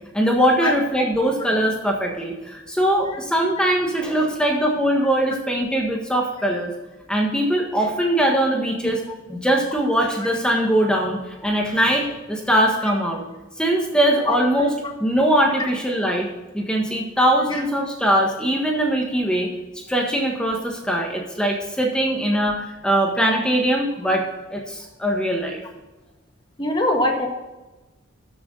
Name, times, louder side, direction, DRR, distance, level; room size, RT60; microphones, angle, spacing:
voice 1, 0.1-6.7 7.1-9.0 9.3-13.2 13.6-14.7 15.0-16.3 16.5-19.5 19.7-24.2 24.5-25.6, right 1 dB, 5° left, 0 dB, 1.5 m, -21 dB
voice 2, 26.6-27.3, left 1 dB, 20° left, 2 dB, 1.7 m, -22 dB
13.0 x 7.8 x 4.0 m, 1.1 s
head